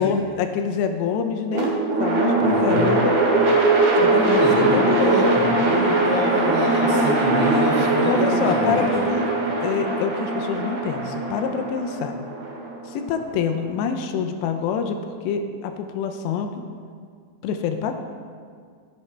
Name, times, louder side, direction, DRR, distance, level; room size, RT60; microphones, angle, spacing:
voice 1, 0.0-1.7 2.0-3.2 4.0-5.4 7.4-9.2 9.6-12.2 12.9-16.5 17.4-18.0, left 6 dB, 85° left, 6 dB, 2.8 m, -26 dB
sound 1, 1.5-13.6, right 2 dB, 65° right, 3.2 m, -21 dB
voice 2, 2.4-2.9 4.1-9.0, right 1 dB, 50° right, -9 dB, 2.1 m, -27 dB
15.5 x 5.9 x 3.3 m, 2.1 s
omnidirectional pair, 5.0 m